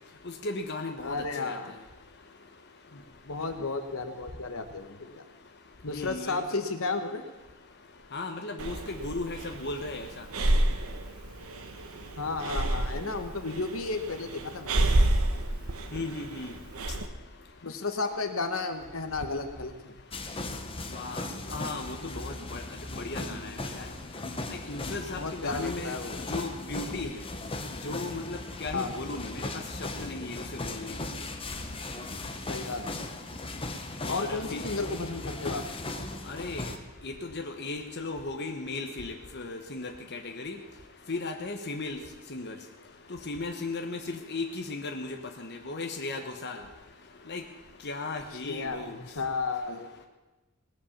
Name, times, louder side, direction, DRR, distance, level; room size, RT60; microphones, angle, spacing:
voice 1, 0.4-1.6 5.9-6.4 8.1-10.1 15.9-16.5 20.9-22.6 22.9-23.9 24.7-25.9 26.3-27.1 27.8-29.6 30.0-30.9 34.1-34.6 36.3-36.7 37.0-40.6 41.1-42.0 42.3-42.5 43.3-46.6 47.3-47.4 47.8-49.0, left 3 dB, 50° left, 4 dB, 1.2 m, -36 dB
voice 2, 1.0-1.7 2.9-5.2 5.8-7.2 12.2-14.8 17.6-20.0 25.1-26.2 28.7-28.9 32.5-33.0 34.1-35.6 48.5-49.9, left 3 dB, 70° left, 7 dB, 1.3 m, -33 dB
Breathing, 8.6-17.1, right 1 dB, 85° right, 1.2 m, -29 dB
sound 1, 20.1-36.8, left 2 dB, 25° left, 1.1 m, -38 dB
18.5 x 8.2 x 7.3 m, 1.1 s
head